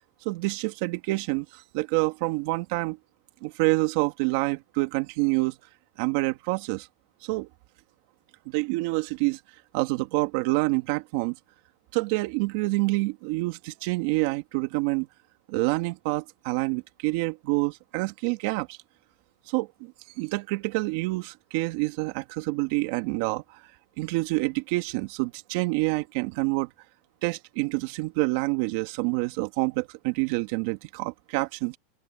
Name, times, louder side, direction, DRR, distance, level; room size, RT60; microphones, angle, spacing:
voice 1, 0.3-3.0 3.4-5.5 6.0-6.9 7.2-7.5 8.5-9.4 9.7-11.3 11.9-15.1 15.5-18.8 19.5-23.6 24.0-26.7 27.2-31.8, right 23 dB, 55° right, 2.2 m, -27 dB
open air
supercardioid pair, 155°, 0 cm